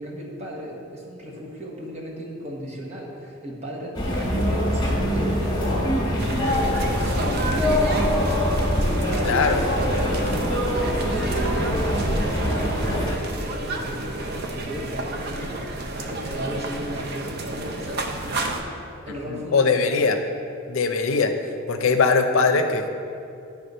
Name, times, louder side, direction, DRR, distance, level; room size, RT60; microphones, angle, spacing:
voice 1, 0.0-10.3 10.7-18.8 19.0-20.1, equal, 35° right, -2 dB, 1.1 m, -35 dB
sound 1, 3.9-13.2, equal, 20° left, 1.3 m, -23 dB
sound 2, 6.2-18.6, right 2 dB, 50° right, 0.6 m, -31 dB
voice 2, 9.2-9.6 19.3-20.2 20.7-21.3 21.7-22.9, left 4 dB, 70° left, 6 dB, 0.5 m, -21 dB
9.3 x 3.5 x 5.3 m, 2.5 s
head